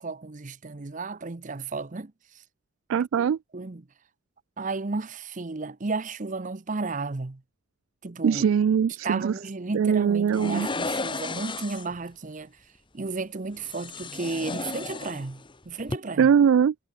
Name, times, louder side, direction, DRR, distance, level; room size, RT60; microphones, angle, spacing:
voice 1, 0.0-2.1 3.2-3.3 3.5-3.9 4.6-7.4 8.0-8.4 9.0-12.6 12.9-16.3, right 3 dB, 40° right, 0.7 m, -33 dB
voice 2, 2.9-3.4 8.2-9.3 9.7-10.7 16.2-16.7, right 7 dB, 70° right, 0.3 m, -21 dB
sound 1, 10.3-12.0 13.6-15.5 15.8-16.0, left 3 dB, 25° left, 1.3 m, -33 dB
head